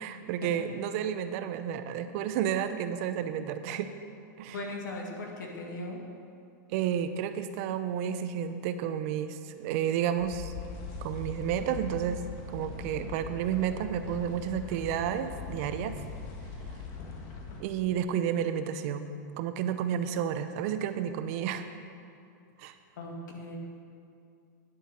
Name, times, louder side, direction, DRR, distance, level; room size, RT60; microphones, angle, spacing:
voice 1, 0.0-3.9 4.4-4.5 6.7-10.5 11.0-12.2 12.5-16.0 17.6-19.0 19.4-21.7 22.6-22.7, right 9 dB, 50° right, 10 dB, 0.7 m, -31 dB
voice 2, 4.5-6.0 23.0-23.6, left 2 dB, 80° left, 0 dB, 2.1 m, -38 dB
sound 1, 10.2-17.6, left 5 dB, 45° left, 1.7 m, -41 dB
10.0 x 7.0 x 6.2 m, 2.4 s
hypercardioid pair, 135°, 10 cm